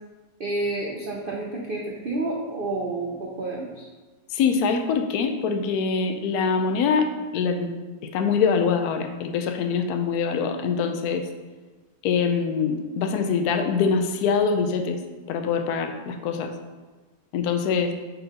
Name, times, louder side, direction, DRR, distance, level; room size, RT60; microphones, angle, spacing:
voice 1, 0.4-3.9, right 2 dB, 85° right, -2 dB, 0.4 m, -29 dB
voice 2, 4.3-11.3 12.0-15.0 15.3-16.5 17.3-17.9, left 5 dB, 70° left, 5 dB, 1.0 m, -24 dB
4.6 x 4.1 x 5.0 m, 1.3 s
omnidirectional pair, 2.0 m